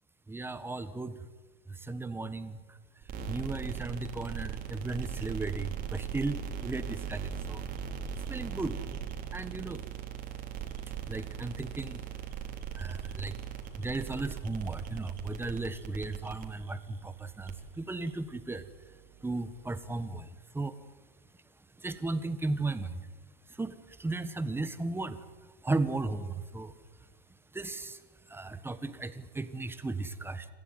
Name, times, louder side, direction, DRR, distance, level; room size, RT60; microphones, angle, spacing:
voice 1, 0.3-1.2 1.7-2.8 3.3-7.6 8.3-8.8 9.3-9.8 11.1-12.0 12.7-13.3 13.8-18.6 19.2-20.3 20.5-20.8 21.8-23.1 23.6-25.2 25.6-26.7 27.5-28.0 28.3-30.5, right 2 dB, 10° right, 12 dB, 1.4 m, -35 dB
sound 1, 3.0-20.1, right 8 dB, 30° right, 3.5 m, -40 dB
27.0 x 15.0 x 9.2 m, 1.4 s
hypercardioid pair, 120°, 29 cm